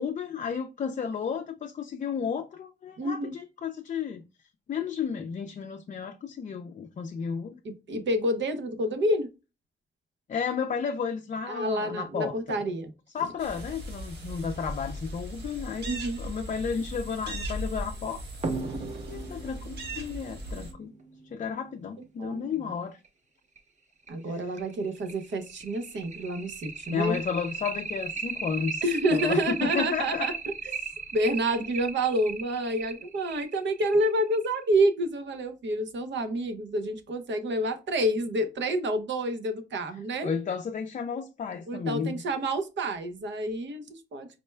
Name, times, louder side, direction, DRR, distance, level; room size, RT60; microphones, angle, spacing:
voice 1, 0.0-4.2 4.7-7.6 10.3-12.6 13.1-15.9 16.2-18.2 19.1-20.9 21.3-23.0 24.3-24.5 26.9-28.8 29.1-30.3 40.2-42.2, left 6 dB, 45° left, 0.4 m, -32 dB
voice 2, 3.0-3.3 7.6-9.3 11.5-12.9 15.9-16.2 22.2-22.5 24.1-27.2 28.8-30.3 30.6-30.7 31.1-40.3 41.7-44.3, right 1 dB, 80° right, 0.7 m, -28 dB
sound 1, 13.4-20.7, equal, 65° right, 1.2 m, -38 dB
sound 2, 18.4-21.6 23.0-23.1 23.6-23.7 24.1-24.2 24.6-34.6, right 5 dB, 40° right, 0.7 m, -36 dB
4.3 x 2.2 x 3.2 m
wide cardioid pair, 140°, 19 cm